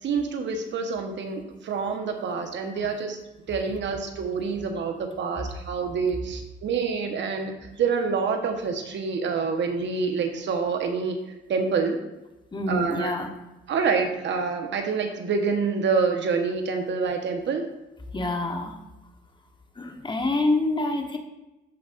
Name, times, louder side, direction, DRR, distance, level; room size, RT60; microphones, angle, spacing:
voice 1, 0.0-3.2 3.5-11.2 11.5-12.0 12.7-13.2 13.7-17.6, right 5 dB, 65° right, 4 dB, 1.3 m, -27 dB
voice 2, 12.5-13.3 18.1-18.8 19.7-21.2, left 2 dB, 25° left, 4 dB, 1.3 m, -26 dB
14.0 x 5.3 x 2.6 m, 0.98 s
cardioid pair, 90°, 20 cm